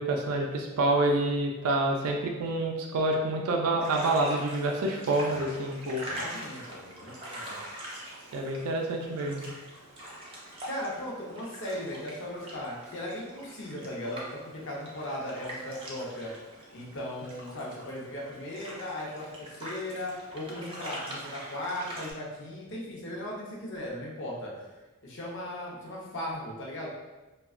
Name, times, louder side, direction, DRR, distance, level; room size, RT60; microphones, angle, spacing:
voice 1, 0.0-6.0 8.3-9.4, right 2 dB, 90° right, 1 dB, 0.4 m, -27 dB
sound 1, 3.8-22.1, right 1 dB, 25° right, 0.5 m, -43 dB
voice 2, 6.0-7.6 10.7-14.2 14.6-16.3 16.7-24.7 25.0-26.9, left 1 dB, 55° left, -4 dB, 0.6 m, -37 dB
2.7 x 2.2 x 2.4 m, 1.1 s
head